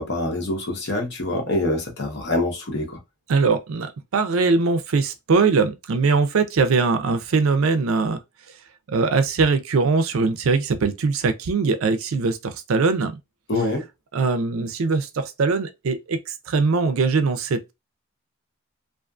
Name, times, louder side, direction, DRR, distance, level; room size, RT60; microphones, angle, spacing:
voice 1, 0.0-3.0 13.5-13.8, left 2 dB, 55° left, 0.8 m, -25 dB
voice 2, 3.3-8.2 8.9-13.1 14.1-16.2 16.5-17.7, right 4 dB, 75° right, 0.4 m, -21 dB
2.4 x 2.4 x 2.3 m
head